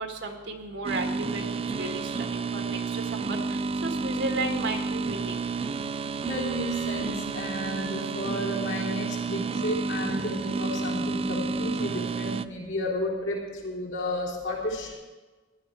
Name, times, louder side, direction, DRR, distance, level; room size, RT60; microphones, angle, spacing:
voice 1, 0.0-5.4, right 2 dB, 65° right, 4 dB, 1.7 m, -34 dB
sound 1, 0.8-12.4, right 4 dB, 30° right, 0.3 m, -30 dB
voice 2, 6.2-14.9, left 1 dB, 70° left, -4 dB, 3.8 m, -32 dB
15.5 x 11.5 x 4.6 m, 1.3 s
head